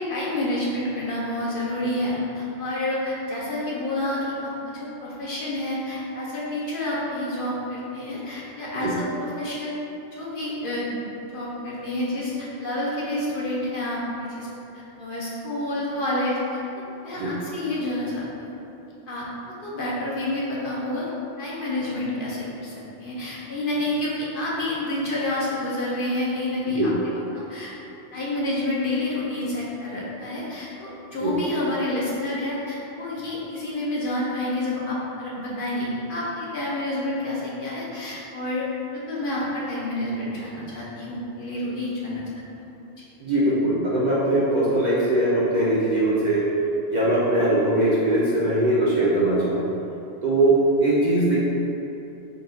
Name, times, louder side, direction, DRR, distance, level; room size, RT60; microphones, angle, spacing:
voice 1, 0.0-9.7 10.1-11.0 11.3-14.5 14.7-18.5 19.1-19.3 19.6-21.1 21.4-26.9 27.3-27.7 28.1-42.2 42.6-42.7, left 1 dB, 55° left, -6 dB, 0.7 m, -29 dB
voice 2, 43.2-46.4 46.9-49.6 50.2-51.4, right 1 dB, 50° right, -8 dB, 0.6 m, -21 dB
4.1 x 2.3 x 3.8 m, 2.9 s
omnidirectional pair, 1.2 m